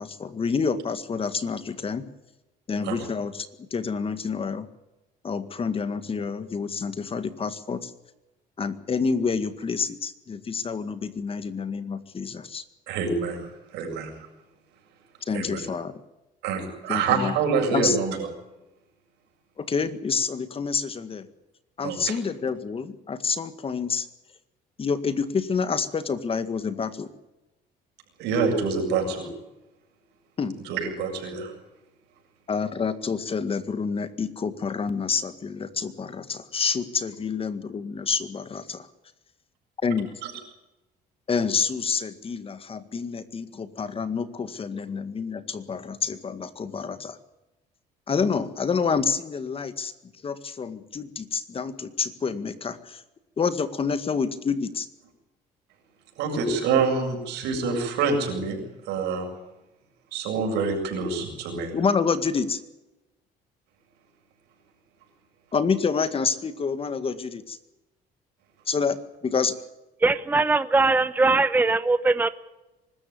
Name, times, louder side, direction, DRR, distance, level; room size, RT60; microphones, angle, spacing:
voice 1, 0.0-2.0 2.7-4.7 5.2-7.9 8.6-12.6 15.2-15.9 16.9-17.3 17.7-18.0 19.6-21.3 21.8-24.1 24.8-27.1 30.4-30.6 32.5-38.9 39.8-40.1 41.3-47.2 48.1-49.9 50.2-53.0 53.4-54.9 61.7-62.6 65.5-67.6 68.7-69.0 69.2-69.6, left 5 dB, 35° left, 12 dB, 1.9 m, -28 dB
voice 2, 12.9-14.1 15.3-15.6 16.4-18.3 21.8-22.2 28.2-29.3 30.6-31.5 40.2-40.3 56.2-58.6 58.9-59.3 60.1-61.7, right 5 dB, 85° right, 2 dB, 7.5 m, -26 dB
voice 3, 70.0-72.3, right 3 dB, 10° right, 13 dB, 0.8 m, -21 dB
24.5 x 14.0 x 9.6 m, 1.0 s
cardioid pair, 110°, 17 cm